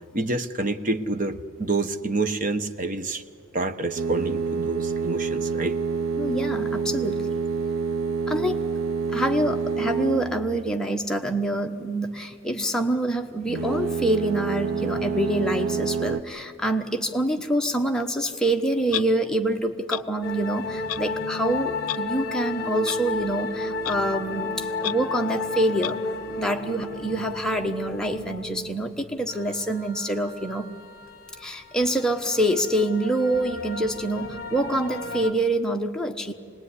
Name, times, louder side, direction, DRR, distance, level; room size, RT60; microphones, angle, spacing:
voice 1, 0.1-3.2 3.5-5.8, right 2 dB, 40° right, 9 dB, 1.0 m, -28 dB
sound 1, 4.0-10.8 13.4-16.2, right 5 dB, 70° right, 1.0 m, -27 dB
voice 2, 6.2-7.3 8.3-8.6 9.1-26.0 26.4-30.7 31.4-36.3, right 1 dB, 5° left, 2 dB, 1.1 m, -26 dB
Clock, 18.9-19.1 19.9-20.0 20.9-21.0 21.9-22.0 22.9-23.0 23.8-23.9 24.8-24.9 25.8-25.9, left 12 dB, 85° left, 0.5 m, -29 dB
sound 2, 20.2-35.3, left 3 dB, 45° left, 1.3 m, -33 dB
25.5 x 20.0 x 9.8 m, 2.3 s
head